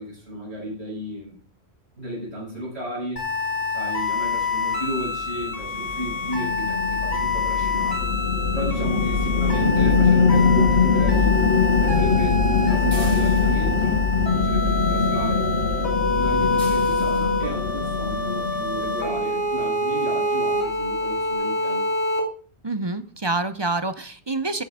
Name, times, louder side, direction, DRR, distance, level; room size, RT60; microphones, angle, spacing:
voice 1, 0.0-1.4 2.0-3.3 3.7-8.0 8.5-11.4 11.7-15.4 16.0-21.9, equal, 80° right, -5 dB, 6.8 m, -33 dB
sound 1, 3.2-22.2, left 2 dB, 60° left, 3.2 m, -26 dB
sound 2, 5.0-19.4, left 4 dB, 90° left, 1.6 m, -22 dB
sound 3, 12.9-13.9 16.6-17.4 18.8-18.9 19.5-19.7 20.0-20.1 20.4-20.5, right 2 dB, 55° right, 2.7 m, -42 dB
voice 2, 22.6-24.6, right 2 dB, 30° right, 12 dB, 0.5 m, -27 dB
16.0 x 6.0 x 3.6 m, 0.43 s
omnidirectional pair, 1.1 m